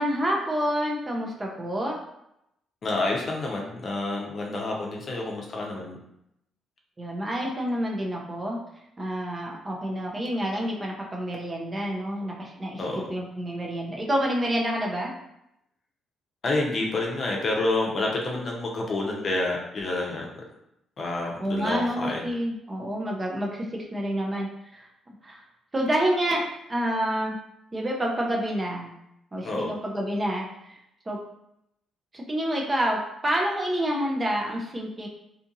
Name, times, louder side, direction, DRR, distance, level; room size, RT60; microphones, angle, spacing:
voice 1, 0.0-2.0 7.0-8.6 9.0-15.1 21.4-23.6 23.9-24.5 24.7-24.9 25.2-25.4 25.7-27.4 27.7-28.9 29.3-30.8 31.1-31.2 32.1-35.1, equal, 25° right, -1 dB, 0.6 m, -28 dB
voice 2, 2.8-6.0 12.8-13.0 16.4-20.3 21.0-22.3 29.4-29.7, left 2 dB, 45° left, -1 dB, 0.6 m, -28 dB
2.7 x 2.5 x 2.6 m, 0.82 s
cardioid pair, 90°, 0 cm